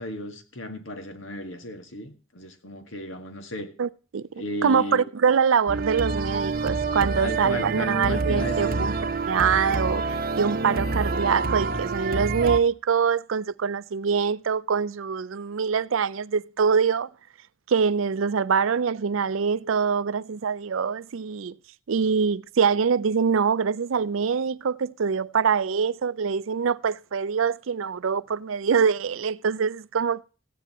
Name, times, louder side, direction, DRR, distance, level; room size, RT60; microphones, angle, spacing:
voice 1, 0.0-3.7 4.4-5.0 7.2-8.9, left 1 dB, 75° left, 1.8 m, -34 dB
voice 2, 3.8-8.9 9.3-17.1 17.7-21.5 21.9-30.2, right 6 dB, 80° right, 0.5 m, -24 dB
sound 1, 5.7-12.6, right 3 dB, 45° right, 0.8 m, -27 dB
14.5 x 9.3 x 4.2 m
head